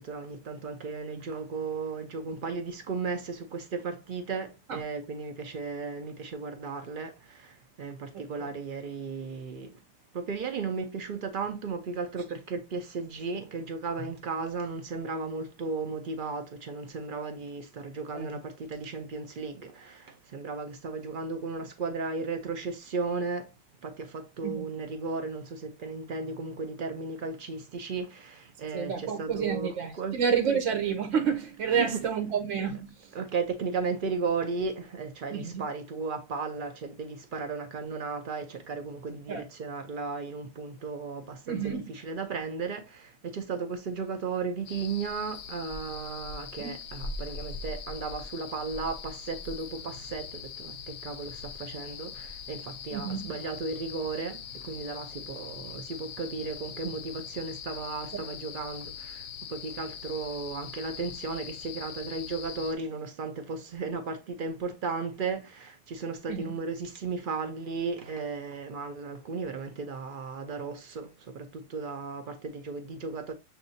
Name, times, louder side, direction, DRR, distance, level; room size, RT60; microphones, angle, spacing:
voice 1, 0.0-9.8 10.1-23.5 23.8-30.2 31.7-32.0 33.1-73.3, right 4 dB, 75° right, 0.4 m, -35 dB
voice 2, 8.1-8.5 18.1-18.4 24.4-24.7 28.7-33.2 35.3-35.6 39.3-39.4 41.5-41.9 46.6-46.7 52.9-53.3 66.3-66.4, right 7 dB, 60° right, 1.0 m, -30 dB
sound 1, 44.7-62.7, left 6 dB, 65° left, 0.9 m, -42 dB
7.1 x 2.7 x 2.6 m
omnidirectional pair, 1.7 m